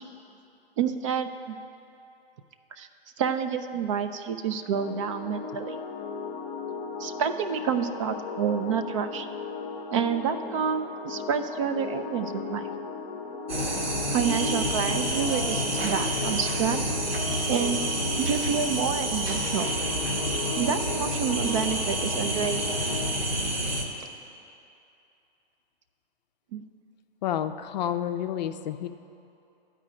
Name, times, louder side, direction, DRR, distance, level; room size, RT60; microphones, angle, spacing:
voice 1, 0.8-1.6 2.8-2.9 3.2-5.8 7.0-9.3 9.9-12.7 14.1-16.8 17.5-17.8 18.2-19.7 20.6-22.8 26.5-26.6, right 7 dB, 35° right, 9 dB, 0.4 m, -28 dB
sound 1, 4.7-23.1, left 5 dB, 25° left, 0.8 m, -36 dB
sound 2, 13.5-23.8, right 1 dB, 75° right, 1.6 m, -28 dB
voice 2, 27.2-28.9, left 10 dB, 45° left, 9 dB, 0.5 m, -29 dB
12.5 x 5.0 x 7.6 m, 2.7 s
figure-of-eight pair, 120°, 29 cm